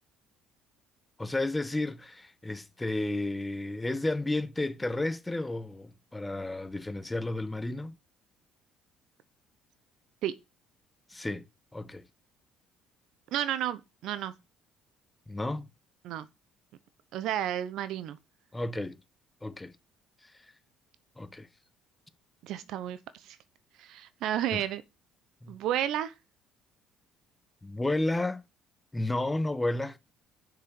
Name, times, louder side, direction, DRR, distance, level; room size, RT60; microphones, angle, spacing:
voice 1, 1.2-7.9 11.1-11.4 11.7-12.1 15.3-15.6 18.5-19.0 19.4-19.7 20.2-20.3 21.2-21.5 24.5-24.6 25.4-25.6 27.6-28.4 28.9-30.0, left 2 dB, 15° left, 1.1 m, -32 dB
voice 2, 13.3-14.3 16.0-16.3 17.1-18.2 22.4-23.0 23.2-23.4 23.8-24.8 25.5-26.1, right 11 dB, 70° right, 0.9 m, -31 dB
7.2 x 6.4 x 7.0 m
supercardioid pair, 65°, 0 cm